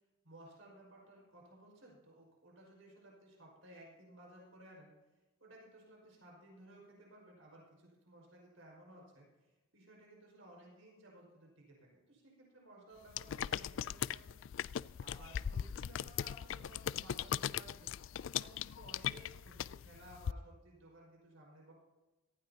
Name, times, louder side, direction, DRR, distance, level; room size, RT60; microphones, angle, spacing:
voice 1, 0.2-4.9 5.4-14.3 15.0-18.0 18.4-21.7, right 1 dB, 75° right, -2 dB, 5.4 m, -58 dB
sound 1, 13.1-20.3, left 9 dB, 65° left, 0.3 m, -39 dB
18.5 x 15.0 x 2.9 m, 1.1 s
head